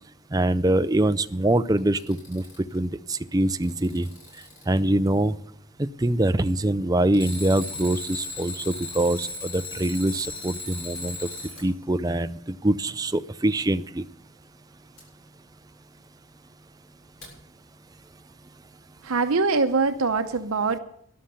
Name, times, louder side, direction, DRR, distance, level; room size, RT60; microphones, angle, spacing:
voice 1, 0.3-2.4 2.7-4.1 4.7-5.4 5.8-11.3 11.6-14.0, right 1 dB, 15° right, 11 dB, 0.4 m, -24 dB
Alarm, 1.8-2.8 3.4-4.8 7.1-11.7 15.0-15.1 17.2-17.3, left 3 dB, 70° left, 6.9 m, -37 dB
voice 2, 19.0-20.8, right 4 dB, 75° right, 7 dB, 0.8 m, -23 dB
13.0 x 11.5 x 6.7 m, 0.68 s
head